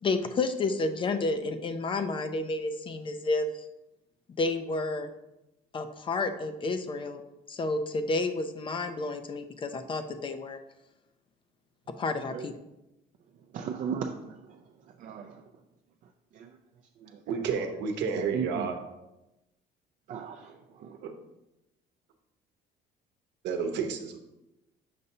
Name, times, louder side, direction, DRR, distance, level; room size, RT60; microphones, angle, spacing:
voice 1, 0.0-3.5 4.4-5.1 5.7-7.2 7.5-10.6 12.0-12.5, left 3 dB, 30° left, 8 dB, 0.4 m, -30 dB
voice 2, 13.5-14.6 15.0-15.4 16.3-16.6 17.0-17.2 18.3-18.7 20.1-21.0, right 7 dB, 50° right, 4 dB, 0.4 m, -36 dB
voice 3, 17.3-18.8 21.0-21.1 23.4-24.2, right 5 dB, 70° right, 5 dB, 0.9 m, -31 dB
6.7 x 2.7 x 5.4 m, 0.94 s
cardioid pair, 140°, 18 cm